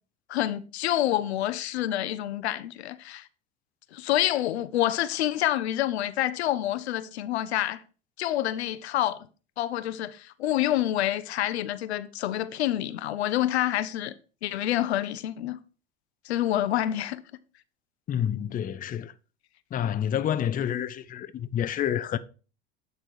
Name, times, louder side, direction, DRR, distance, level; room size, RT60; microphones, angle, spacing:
voice 1, 0.3-3.3 3.9-7.8 8.2-9.2 9.6-14.1 14.4-15.6 16.3-17.2, left 13 dB, 85° left, 0.6 m, -27 dB
voice 2, 18.1-19.1 19.7-22.2, left 9 dB, 25° left, 0.6 m, -28 dB
8.9 x 4.1 x 4.7 m
hypercardioid pair, 80°, 32 cm